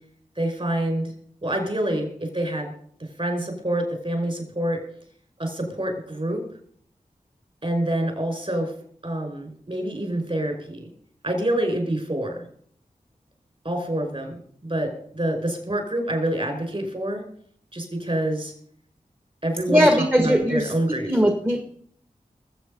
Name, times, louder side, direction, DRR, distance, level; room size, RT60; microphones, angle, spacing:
voice 1, 0.4-1.1 1.4-2.7 3.2-4.8 5.4-6.4 7.6-8.7 9.0-10.9 11.2-12.4 13.6-17.2 17.7-18.5 19.4-21.1, right 1 dB, 40° right, 4 dB, 5.2 m, -27 dB
voice 2, 19.7-21.6, equal, 15° right, 5 dB, 1.6 m, -20 dB
21.0 x 7.8 x 5.3 m, 0.63 s
cardioid pair, 50°, 14 cm